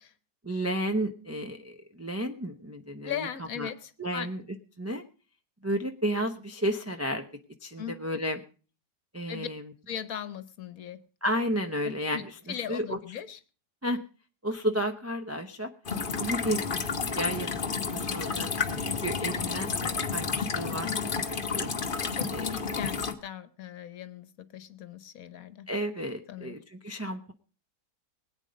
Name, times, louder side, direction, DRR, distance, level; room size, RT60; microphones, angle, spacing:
voice 1, 0.4-3.3 3.6-3.7 4.0-4.4 4.8-5.0 5.6-7.2 7.6-8.4 9.1-9.6 11.2-13.0 13.8-14.0 14.4-15.7 16.2-20.9 21.3-22.9 25.7-27.3, equal, 15° right, 5 dB, 0.5 m, -32 dB
voice 2, 3.0-4.3 7.8-8.2 9.3-9.5 9.9-11.0 12.1-12.2 12.5-13.4 20.8-21.2 22.0-25.7 26.3-26.5, left 9 dB, 65° left, 14 dB, 1.3 m, -39 dB
sound 1, 15.9-23.1, left 5 dB, 40° left, 1.1 m, -31 dB
21.0 x 9.1 x 5.2 m, 0.38 s
omnidirectional pair, 1.7 m